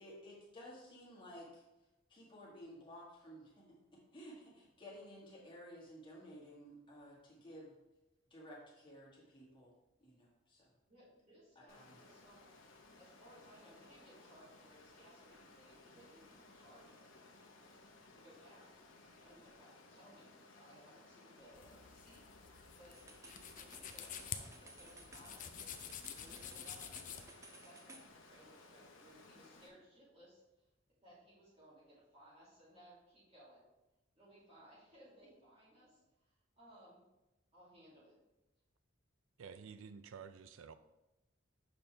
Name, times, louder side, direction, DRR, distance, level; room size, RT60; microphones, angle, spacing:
voice 1, 0.0-1.6 2.1-7.7 8.3-9.7 10.0-10.7 11.6-12.0, equal, 25° left, -5 dB, 1.8 m, -54 dB
voice 2, 10.9-12.5 13.0-16.2 16.5-17.2 18.1-18.8 19.2-25.4 26.2-26.9 27.4-30.4 31.0-33.6 34.1-37.0 37.5-38.1, equal, 30° right, -10 dB, 2.5 m, -62 dB
Water, 11.7-29.7, left 2 dB, 80° left, 0.9 m, -61 dB
sound 1, 21.5-27.3, left 8 dB, 40° left, 0.4 m, -49 dB
sound 2, 22.9-28.1, right 2 dB, 15° right, 0.6 m, -58 dB
voice 3, 39.4-40.7, right 6 dB, 85° right, 12 dB, 0.4 m, -51 dB
6.7 x 5.4 x 3.3 m, 0.97 s
head